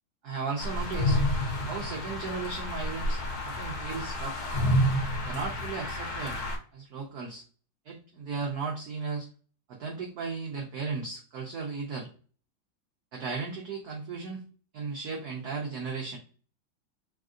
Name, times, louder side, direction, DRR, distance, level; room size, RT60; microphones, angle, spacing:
voice 1, 0.2-1.2 1.7-4.3 5.2-6.4 6.7-7.4 7.8-9.3 9.7-12.1 13.1-14.4 14.7-16.2, right 4 dB, 70° right, -1 dB, 0.9 m, -35 dB
sound 1, 0.6-6.6, left 1 dB, 55° left, 1.4 m, -29 dB
3.5 x 2.4 x 2.4 m, 0.40 s
omnidirectional pair, 2.3 m